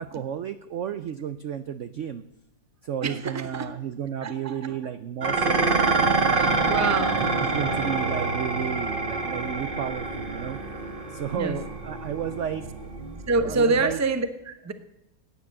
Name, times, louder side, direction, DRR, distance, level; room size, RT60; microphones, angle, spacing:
voice 1, 0.0-2.2 2.8-5.8 6.2-6.7 7.2-10.6 11.1-12.6 13.4-14.0, right 9 dB, 75° right, 11 dB, 0.6 m, -32 dB
voice 2, 3.0-3.8 4.2-4.7 6.2-7.2 11.4-11.6 13.3-14.7, right 3 dB, 15° right, 10 dB, 0.5 m, -27 dB
Dishes pots and pans, 5.2-14.0, right 3 dB, 35° right, 1.2 m, -26 dB
16.5 x 9.7 x 7.6 m, 0.93 s
omnidirectional pair, 2.0 m